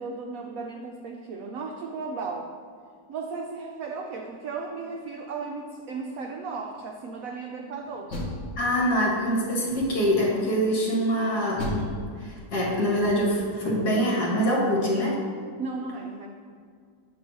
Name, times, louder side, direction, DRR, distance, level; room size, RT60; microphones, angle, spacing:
voice 1, 0.0-2.5 3.1-8.1 15.6-16.3, right 4 dB, 75° right, 2 dB, 0.8 m, -35 dB
Door, 7.8-9.1 9.6-10.2 11.6-13.5, left 1 dB, 40° left, 1.3 m, -35 dB
voice 2, 8.6-11.9 12.2-15.3, equal, 60° left, -3 dB, 2.0 m, -24 dB
8.1 x 3.1 x 6.1 m, 2.2 s
omnidirectional pair, 2.0 m